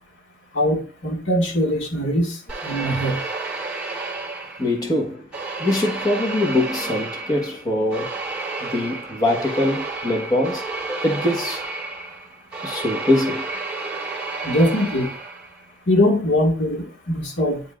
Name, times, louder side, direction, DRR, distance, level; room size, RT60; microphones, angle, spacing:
voice 1, 0.5-3.2 14.4-15.1 15.9-17.6, left 1 dB, 85° left, 1.9 m, -21 dB
sound 1, 2.5-4.9 5.3-15.6, right 3 dB, 5° right, 2.0 m, -31 dB
voice 2, 4.6-5.3 5.6-8.1 8.6-11.6 12.6-13.5, left 1 dB, 20° left, 1.2 m, -23 dB
10.5 x 4.3 x 2.5 m
head